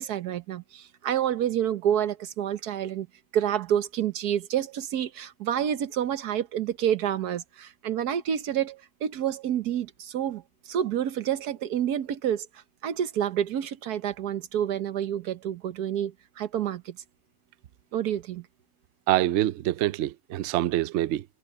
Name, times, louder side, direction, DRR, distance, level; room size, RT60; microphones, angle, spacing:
voice 1, 0.0-3.1 3.3-12.5 12.8-17.0 17.9-18.5, right 10 dB, 65° right, 1.4 m, -28 dB
voice 2, 19.1-21.2, right 14 dB, 85° right, 0.6 m, -25 dB
omnidirectional pair, 1.8 m